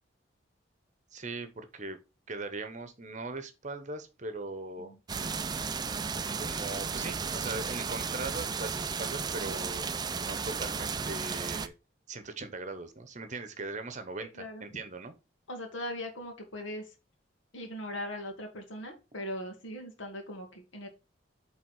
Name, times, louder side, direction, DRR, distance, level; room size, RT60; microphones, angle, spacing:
voice 1, 1.1-2.0 2.3-5.0 6.1-9.9 10.2-11.7 12.1-15.1, right 3 dB, 40° right, 0.9 m, -40 dB
sound 1, 5.1-11.7, right 5 dB, 20° right, 0.4 m, -34 dB
voice 2, 14.2-14.6 15.5-16.9 17.5-20.9, left 1 dB, 75° left, 1.8 m, -40 dB
8.4 x 3.6 x 4.7 m
head